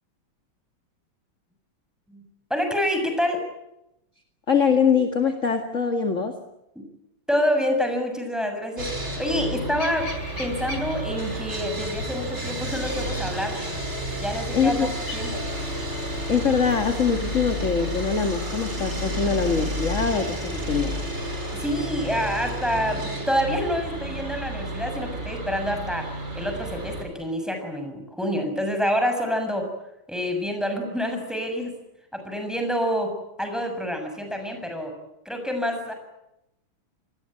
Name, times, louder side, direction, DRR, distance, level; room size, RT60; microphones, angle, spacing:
voice 1, 2.5-3.4 6.8-6.9 7.3-10.1 10.4-13.6 14.2-15.4 21.5-29.7 30.1-31.7 32.1-34.9 35.3-35.9, equal, ahead, 5 dB, 6.9 m, -27 dB
voice 2, 4.5-6.4 14.5-14.9 16.3-21.0, left 6 dB, 35° left, 5 dB, 2.3 m, -23 dB
Sawing, 8.8-27.0, equal, 30° right, 5.7 m, -31 dB
sound 1, 9.8-18.0, left 1 dB, 85° left, 7.4 m, -40 dB
29.0 x 20.5 x 9.0 m, 0.88 s
omnidirectional pair, 2.4 m